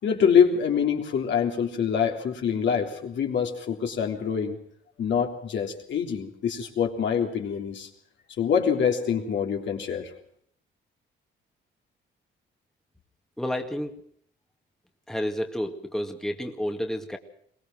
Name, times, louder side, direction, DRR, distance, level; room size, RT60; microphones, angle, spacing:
voice 1, 0.0-4.6 5.0-7.9 8.4-10.1, left 7 dB, 65° left, 2 dB, 3.5 m, -25 dB
voice 2, 13.4-13.9 15.1-17.2, equal, ahead, 4 dB, 2.0 m, -30 dB
23.0 x 18.5 x 6.2 m, 0.65 s
cardioid pair, 90°, 20 cm